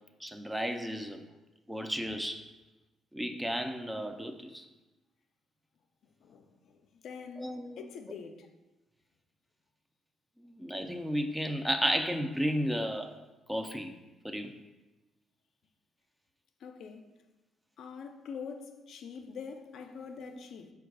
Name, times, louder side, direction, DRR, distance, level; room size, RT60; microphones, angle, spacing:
voice 1, 0.2-1.2 1.7-2.4 3.1-4.7 7.4-7.8 10.4-13.1 13.5-13.9 14.2-14.5, equal, 5° right, 0.4 m, -33 dB
voice 2, 7.0-8.5 16.6-17.0 17.8-20.7, left 6 dB, 70° left, 0.4 m, -44 dB
4.4 x 2.3 x 4.6 m
cardioid pair, 90°, 0 cm